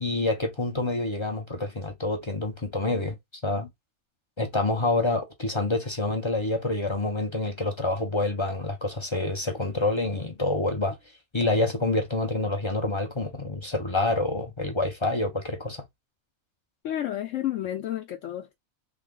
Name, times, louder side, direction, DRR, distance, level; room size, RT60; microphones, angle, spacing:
voice 1, 0.0-3.2 3.4-3.7 4.4-11.0 11.3-15.8, left 2 dB, 35° left, 0.5 m, -27 dB
voice 2, 16.8-18.6, left 12 dB, 70° left, 0.9 m, -31 dB
3.6 x 2.2 x 3.6 m
omnidirectional pair, 1.5 m